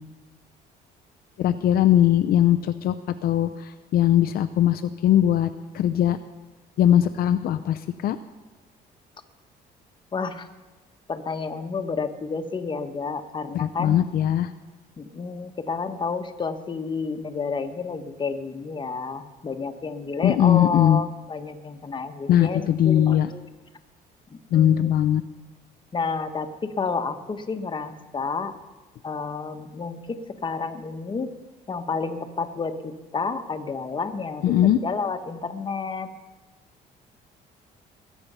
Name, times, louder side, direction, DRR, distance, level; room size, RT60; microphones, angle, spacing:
voice 1, 1.4-3.0 3.2-5.5 5.7-6.2 6.8-8.2 13.5-14.5 20.2-21.0 22.3-23.3 24.5-25.2 34.4-34.8, left 11 dB, 65° left, 9 dB, 0.6 m, -20 dB
voice 2, 10.1-10.5 11.1-14.0 15.0-23.5 24.5-24.9 25.9-28.5 29.0-31.3 31.7-34.5 34.8-36.1, left 4 dB, 30° left, 8 dB, 1.2 m, -30 dB
21.0 x 8.5 x 5.6 m, 1.2 s
cardioid pair, 110°, 17 cm